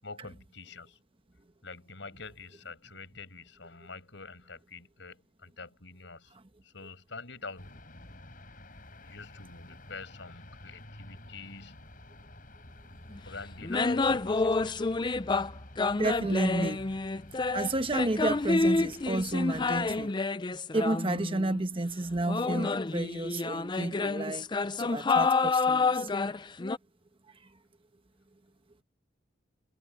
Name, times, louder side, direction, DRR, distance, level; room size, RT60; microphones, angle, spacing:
voice 1, 0.0-1.0 1.6-6.3 6.6-7.7 9.0-11.8 13.1-15.0, left 4 dB, 75° left, 5.9 m, -46 dB
sound 1, 7.6-20.1, left 1 dB, 45° left, 7.7 m, -50 dB
sound 2, 13.1-13.2 13.6-15.5 15.8-21.7 22.3-26.8, left 3 dB, 25° left, 0.5 m, -29 dB
voice 2, 15.9-16.8 17.5-20.1 20.7-24.5 24.8-26.2, right 2 dB, 30° right, 1.1 m, -31 dB
head